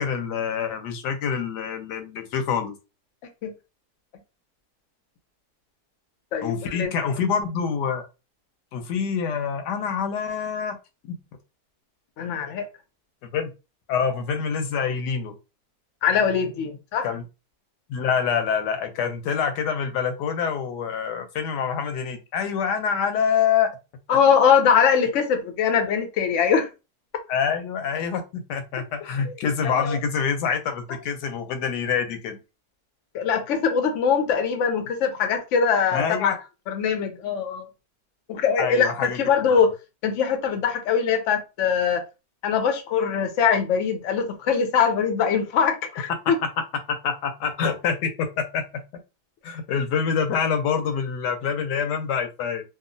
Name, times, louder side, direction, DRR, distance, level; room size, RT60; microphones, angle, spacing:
voice 1, 0.0-2.8 6.4-8.0 8.7-10.8 11.1-11.2 13.3-13.5 13.9-15.3 17.0-17.2 17.9-23.7 27.3-32.4 35.9-36.4 38.6-39.2 39.5-39.6 46.9-48.6 49.4-52.6, left 6 dB, 80° left, 1.2 m, -26 dB
voice 2, 6.3-6.9 12.2-12.7 16.0-17.1 24.1-26.7 29.3-29.4 29.6-29.9 33.1-36.4 36.7-37.7 38.3-39.7 40.0-42.0 42.4-46.4, left 6 dB, 65° left, 0.8 m, -22 dB
2.9 x 2.4 x 2.5 m
omnidirectional pair, 1.8 m